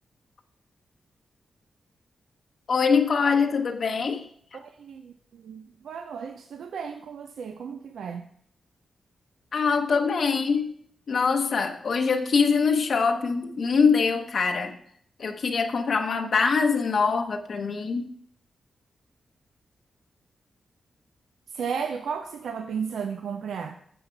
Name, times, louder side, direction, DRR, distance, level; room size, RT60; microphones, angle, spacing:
voice 1, 2.7-4.3 9.5-10.7 11.1-14.8 15.2-18.1, left 5 dB, 65° left, 4 dB, 0.8 m, -23 dB
voice 2, 4.5-8.3 21.5-23.8, right 6 dB, 85° right, 7 dB, 0.5 m, -34 dB
9.4 x 7.3 x 4.5 m, 0.65 s
cardioid pair, 55°, 0 cm